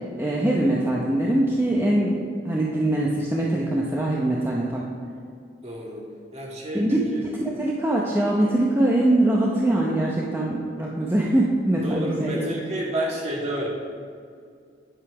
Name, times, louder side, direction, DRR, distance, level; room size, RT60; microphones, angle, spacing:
voice 1, 0.2-2.2 2.4-4.8 6.7-7.0 7.6-12.4, right 1 dB, 15° right, -4 dB, 0.8 m, -22 dB
voice 2, 5.6-6.1 6.3-7.3 11.7-13.7, right 1 dB, 40° right, -3 dB, 1.9 m, -30 dB
9.0 x 8.2 x 4.9 m, 2.2 s
head